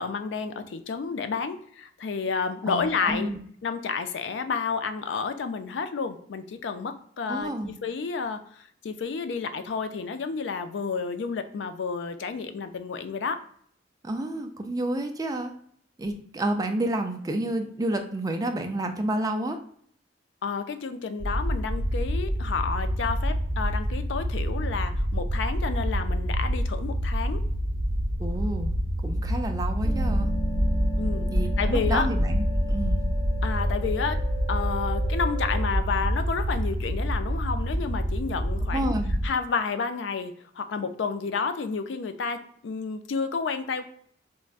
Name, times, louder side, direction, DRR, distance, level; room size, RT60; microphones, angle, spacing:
voice 1, 0.0-3.3 3.6-13.4 20.4-27.4 31.0-31.3 31.6-32.1 33.4-34.2 34.5-38.9 39.2-43.8, left 5 dB, 70° left, 9 dB, 0.4 m, -30 dB
voice 2, 2.7-3.4 7.3-7.7 14.0-15.5 16.0-19.6 28.2-28.7 29.0-30.3 31.3-32.4 32.7-33.0 38.7-39.2, right 1 dB, 20° right, 5 dB, 0.4 m, -30 dB
sound 1, 21.2-39.3, equal, 70° right, 0.8 m, -27 dB
sound 2, 29.8-35.7, equal, 10° left, 0.9 m, -31 dB
4.5 x 2.1 x 2.4 m, 0.62 s
head